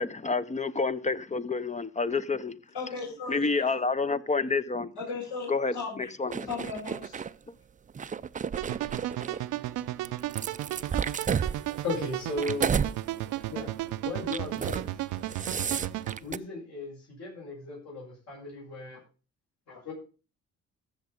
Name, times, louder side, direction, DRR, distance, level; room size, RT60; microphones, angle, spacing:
voice 1, 0.0-2.5 3.3-4.9 5.5-5.7 6.2-6.5, left 4 dB, 25° left, 0.6 m, -28 dB
voice 2, 2.7-3.7 5.0-6.1 6.4-7.1, left 4 dB, 80° left, 6.5 m, -37 dB
sound 1, 6.3-7.3 7.9-9.4 10.0-12.9 13.4-13.6 14.2-14.9 15.2-16.4, right 7 dB, 25° right, 0.4 m, -32 dB
sound 2, 8.6-16.2, right 15 dB, 85° right, 0.6 m, -34 dB
voice 3, 11.8-12.7 13.5-13.7 14.0-14.8 16.2-16.9 17.2-19.0 19.7-19.9, left 2 dB, 60° left, 6.6 m, -36 dB
14.5 x 6.7 x 5.1 m
cardioid pair, 90°, 30 cm